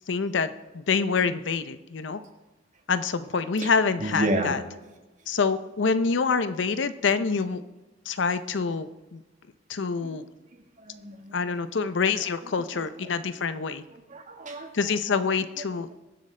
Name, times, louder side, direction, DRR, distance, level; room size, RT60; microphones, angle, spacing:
voice 1, 0.1-2.2 2.9-4.6 5.3-7.6 8.1-9.2 9.7-10.3 11.3-13.8 14.7-15.9, left 5 dB, 70° left, 12 dB, 0.6 m, -26 dB
voice 2, 4.0-4.6 10.0-10.2 10.5-11.6 12.7-12.8 13.9-14.9, right 1 dB, 40° right, 3 dB, 1.6 m, -32 dB
22.0 x 7.8 x 3.3 m, 1.2 s
head